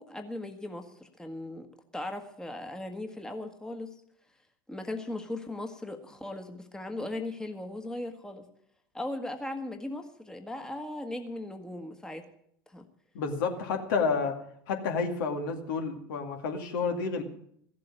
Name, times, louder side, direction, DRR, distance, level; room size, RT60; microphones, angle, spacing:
voice 1, 0.0-1.7 1.9-3.9 4.7-8.5 8.9-12.2 12.7-12.8, left 1 dB, 5° left, 5 dB, 1.5 m, -38 dB
voice 2, 13.1-14.4 14.7-17.2, left 5 dB, 70° left, 4 dB, 2.3 m, -30 dB
15.0 x 7.7 x 9.0 m, 0.69 s
hypercardioid pair, 85°, 12 cm